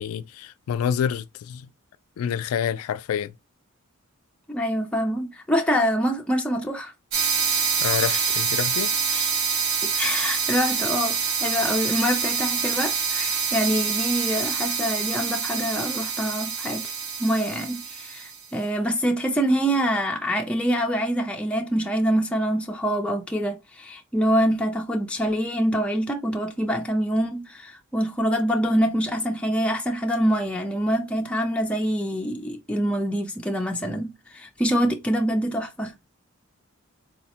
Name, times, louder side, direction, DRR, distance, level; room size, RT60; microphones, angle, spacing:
voice 1, 0.0-1.7 2.2-3.3 7.8-8.9, left 8 dB, 85° left, 0.3 m, -27 dB
voice 2, 4.5-6.9 7.4-7.6 8.1-8.3 9.1-9.3 9.8-16.9 17.2-35.9, equal, 5° left, 0.4 m, -25 dB
sound 1, 7.1-18.4, right 5 dB, 65° right, 0.7 m, -26 dB
4.0 x 2.0 x 2.8 m
head